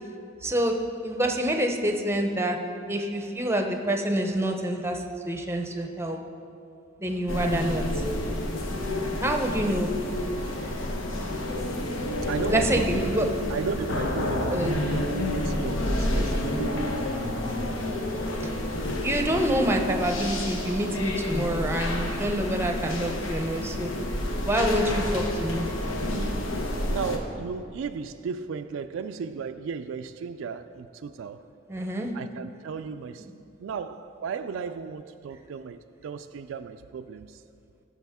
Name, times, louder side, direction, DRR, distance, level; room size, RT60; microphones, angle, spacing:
voice 1, 0.4-2.6 2.9-6.2 7.0-8.0 9.2-9.9 12.5-13.3 14.5-14.7 18.4-18.5 19.0-23.9 24.4-25.7 31.7-32.1, right 1 dB, 15° right, 4 dB, 0.6 m, -27 dB
sound 1, 7.3-27.2, left 1 dB, 85° left, 1.0 m, -29 dB
voice 2, 12.3-17.5 26.9-31.4 32.1-33.3 33.6-37.4, right 6 dB, 70° right, 9 dB, 0.3 m, -35 dB
14.5 x 6.1 x 3.6 m, 2.5 s
head